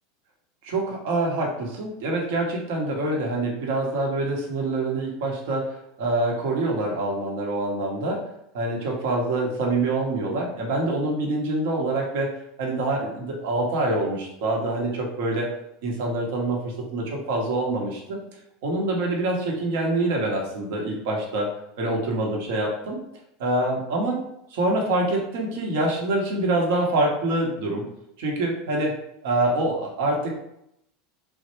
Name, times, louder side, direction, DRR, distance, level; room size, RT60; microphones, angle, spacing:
voice 1, 0.6-8.2 8.5-12.3 12.6-15.5 15.8-18.2 18.6-21.5 21.8-23.0 23.4-24.2 24.5-27.9 28.2-29.0 29.2-30.4, right 2 dB, 70° right, 0 dB, 0.9 m, -25 dB
3.1 x 2.1 x 3.1 m, 0.79 s
supercardioid pair, 110°, 0 cm